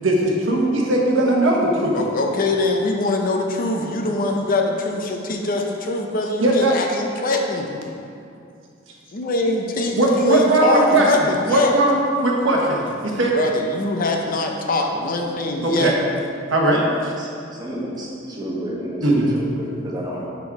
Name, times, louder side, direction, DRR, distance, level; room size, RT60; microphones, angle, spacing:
voice 1, 0.0-2.0 6.4-6.7 10.0-11.1 11.5-12.8 13.1-13.3 15.6-15.9 16.5-16.8 19.0-19.2, right 1 dB, 75° right, -1 dB, 1.1 m, -18 dB
voice 2, 1.9-7.7 9.1-11.7 13.3-15.9, left 2 dB, 45° left, 2 dB, 0.7 m, -23 dB
voice 3, 17.2-20.3, equal, 20° right, -4 dB, 1.3 m, -31 dB
6.0 x 5.3 x 4.7 m, 2.4 s
head